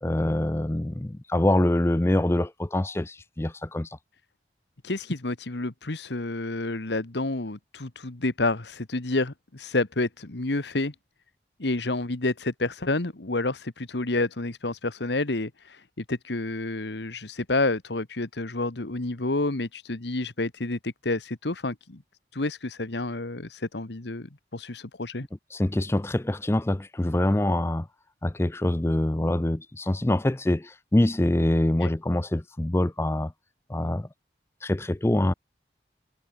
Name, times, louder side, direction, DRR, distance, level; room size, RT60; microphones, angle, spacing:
voice 1, 0.0-3.9 25.5-27.9 28.2-33.3 33.7-34.1 34.6-35.3, left 1 dB, 15° left, 0.4 m, -25 dB
voice 2, 4.8-10.9 11.6-22.0 22.3-25.3 31.8-31.9, left 2 dB, 75° left, 1.5 m, -29 dB
head